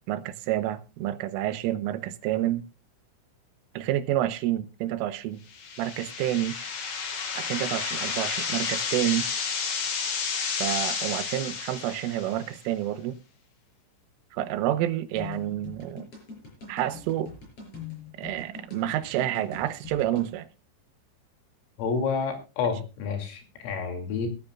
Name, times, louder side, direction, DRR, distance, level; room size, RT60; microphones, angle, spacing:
voice 1, 0.1-2.7 3.8-5.4 5.8-6.6 7.4-9.3 10.4-13.2 14.3-16.1 16.7-17.3 18.2-20.5, right 13 dB, 85° right, 3.4 m, -29 dB
sound 1, 5.5-12.5, left 5 dB, 55° left, 2.1 m, -31 dB
sound 2, 15.2-20.3, left 5 dB, 30° left, 6.5 m, -43 dB
voice 2, 21.8-24.3, left 5 dB, 80° left, 5.3 m, -29 dB
20.0 x 13.0 x 2.4 m
omnidirectional pair, 5.8 m